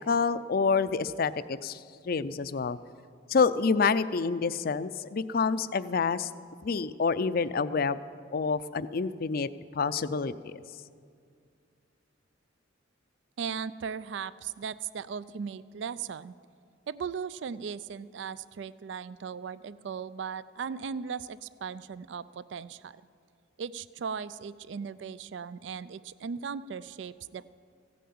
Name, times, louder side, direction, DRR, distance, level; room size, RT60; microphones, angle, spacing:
voice 1, 0.1-1.8 2.1-2.8 3.3-6.3 6.6-8.0 8.3-9.5 9.7-10.6, left 5 dB, 50° left, 14 dB, 0.5 m, -27 dB
voice 2, 13.4-16.3 16.9-23.0 23.6-27.5, right 6 dB, 65° right, 17 dB, 0.4 m, -37 dB
15.5 x 9.3 x 8.6 m, 2.3 s
head